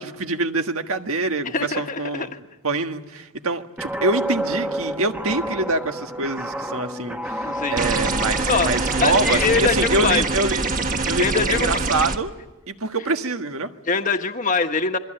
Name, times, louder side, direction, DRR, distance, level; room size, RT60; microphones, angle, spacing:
voice 1, 0.0-2.3 2.6-10.6 11.1-12.3 12.7-13.7, right 2 dB, 75° right, 6 dB, 1.5 m, -25 dB
voice 2, 1.5-2.3 7.4-7.7 8.5-8.7 9.0-10.2 11.2-11.8 13.9-15.0, left 4 dB, 35° left, 6 dB, 1.5 m, -23 dB
Guitar, 3.8-10.3, equal, 5° right, 1.2 m, -30 dB
sound 1, 7.8-12.2, right 3 dB, 35° right, 1.5 m, -24 dB
27.5 x 23.5 x 9.0 m, 1.0 s
head